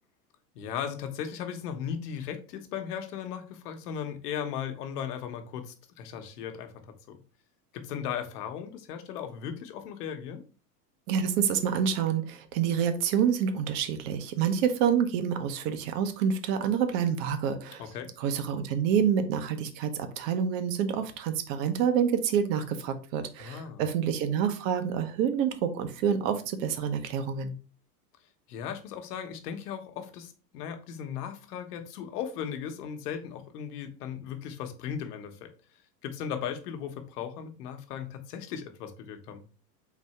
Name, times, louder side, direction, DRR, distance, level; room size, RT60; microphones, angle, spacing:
voice 1, 0.5-6.7 7.1-7.2 7.7-10.4 17.8-18.1 23.4-23.8 28.5-35.5 36.0-39.4, left 8 dB, 70° left, 6 dB, 1.0 m, -37 dB
voice 2, 11.1-17.8 18.2-27.5, right 8 dB, 55° right, 10 dB, 0.8 m, -27 dB
4.1 x 2.7 x 4.1 m, 0.37 s
hypercardioid pair, 105°, 48 cm